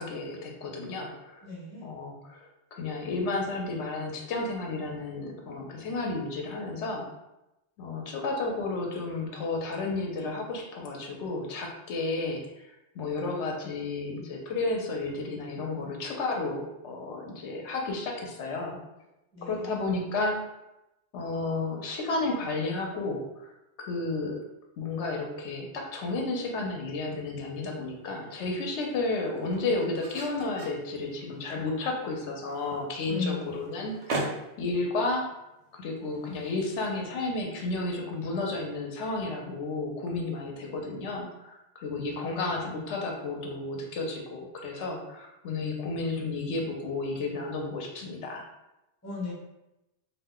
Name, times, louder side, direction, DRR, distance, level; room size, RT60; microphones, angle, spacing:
voice 1, 0.0-1.4 1.8-7.1 7.8-12.4 12.9-18.8 19.4-20.3 21.1-23.5 23.8-24.3 24.8-34.3 34.6-35.2 35.7-48.4, left 3 dB, 85° left, 1 dB, 0.9 m, -32 dB
voice 2, 1.4-1.9 19.3-19.8 33.1-33.8 41.9-42.3 49.0-49.3, left 3 dB, 20° left, -4 dB, 0.6 m, -36 dB
sound 1, 27.2-37.5, right 2 dB, 90° right, 0.9 m, -42 dB
2.4 x 2.1 x 3.6 m, 0.92 s
omnidirectional pair, 1.2 m